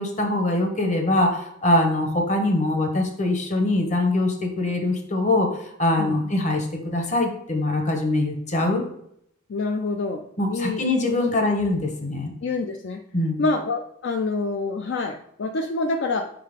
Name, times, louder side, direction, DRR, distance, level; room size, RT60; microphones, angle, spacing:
voice 1, 0.0-8.8 10.4-12.3 13.1-13.4, left 2 dB, 35° left, 4 dB, 1.0 m, -23 dB
voice 2, 6.0-6.3 9.5-10.2 10.5-10.8 12.4-13.0 13.4-16.3, left 3 dB, 55° left, 5 dB, 0.4 m, -26 dB
5.4 x 3.8 x 5.0 m, 0.72 s
head